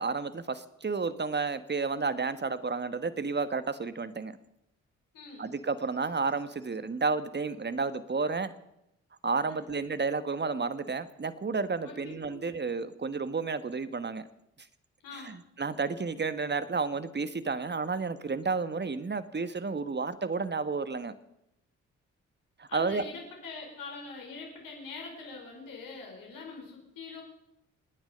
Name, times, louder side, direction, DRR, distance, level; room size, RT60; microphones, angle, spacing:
voice 1, 0.0-4.4 5.4-8.5 9.2-14.3 15.2-21.1 22.6-23.0, right 4 dB, 30° right, 13 dB, 1.4 m, -31 dB
voice 2, 5.1-5.5 9.4-9.6 11.8-11.9 12.3-12.4 15.0-15.3 22.7-27.2, left 4 dB, 75° left, 0 dB, 4.9 m, -43 dB
27.5 x 9.6 x 5.2 m, 0.84 s
hypercardioid pair, 40°, 34 cm